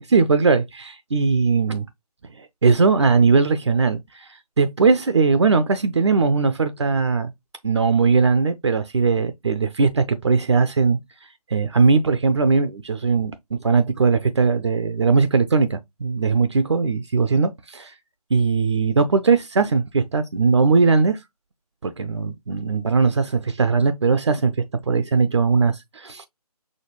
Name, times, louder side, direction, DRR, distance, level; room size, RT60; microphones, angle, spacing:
voice 1, 0.0-1.9 2.4-4.3 4.6-7.3 7.6-11.0 11.5-17.9 18.3-21.2 21.8-24.5 24.9-26.3, right 4 dB, 45° right, 0.6 m, -19 dB
6.3 x 2.2 x 3.0 m
figure-of-eight pair, 150°, 20 cm